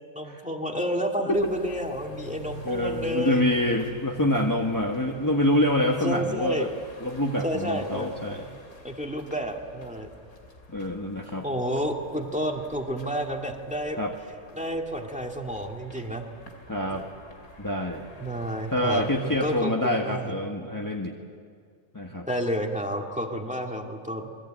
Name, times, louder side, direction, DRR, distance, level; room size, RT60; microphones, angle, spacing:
voice 1, 0.1-3.5 6.0-6.7 7.4-8.1 8.8-10.1 11.4-14.0 14.5-16.3 18.2-20.3 22.3-24.3, equal, 5° right, 2 dB, 2.1 m, -30 dB
sound 1, 1.3-19.6, left 2 dB, 85° left, 3.4 m, -48 dB
voice 2, 2.6-6.7 7.0-8.4 10.7-11.4 14.0-14.1 16.7-17.1 17.6-18.1 18.7-21.1 21.9-22.3, left 1 dB, 15° left, 2 dB, 1.4 m, -26 dB
27.5 x 21.5 x 8.9 m, 2.2 s
omnidirectional pair, 1.5 m